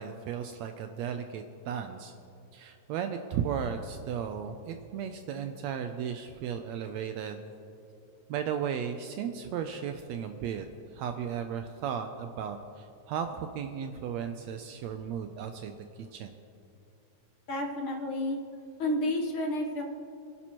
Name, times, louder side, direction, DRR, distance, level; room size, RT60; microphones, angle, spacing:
voice 1, 0.0-2.1 2.5-7.4 8.3-10.7 10.9-16.3, right 8 dB, 85° right, 6 dB, 1.5 m, -35 dB
voice 2, 17.5-18.4 18.8-19.8, left 1 dB, 60° left, 1 dB, 1.4 m, -30 dB
24.0 x 11.5 x 3.0 m, 2.7 s
omnidirectional pair, 3.8 m